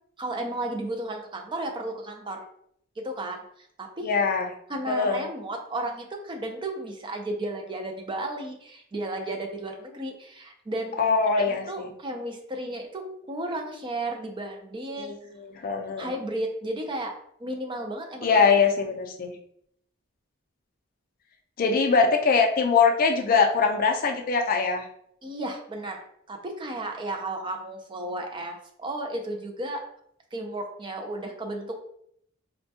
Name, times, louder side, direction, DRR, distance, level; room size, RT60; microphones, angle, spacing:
voice 1, 0.2-2.4 3.0-4.1 4.7-11.0 11.5-15.1 16.0-17.1 17.4-18.4 25.2-29.8 30.3-31.8, right 1 dB, 25° right, 3 dB, 0.4 m, -33 dB
voice 2, 4.0-4.5 4.9-5.2 11.0-11.9 15.0-15.2 15.5-16.1 18.2-19.4 21.6-24.9, left 5 dB, 45° left, 3 dB, 0.4 m, -22 dB
4.2 x 2.2 x 2.7 m, 0.69 s
head